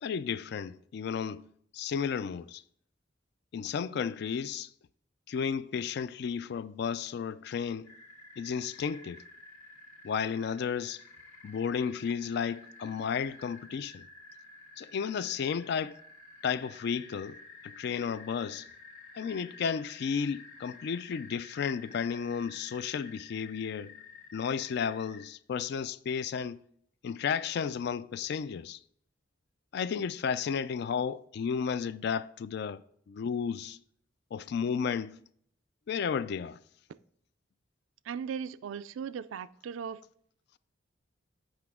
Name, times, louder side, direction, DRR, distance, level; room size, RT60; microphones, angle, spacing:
voice 1, 0.0-1.5 1.7-2.6 3.5-4.7 5.3-7.9 8.4-9.2 10.0-11.0 11.4-14.0 14.8-16.0 16.4-18.7 19.2-24.0 24.3-26.6 27.0-28.8 29.7-32.8 33.1-33.8 34.3-35.2 35.9-36.6, left 6 dB, 55° left, 0.3 m, -33 dB
sound 1, 7.8-25.3, left 3 dB, 85° left, 2.0 m, -52 dB
voice 2, 38.1-40.0, right 7 dB, 80° right, 0.3 m, -38 dB
7.9 x 5.8 x 3.6 m
head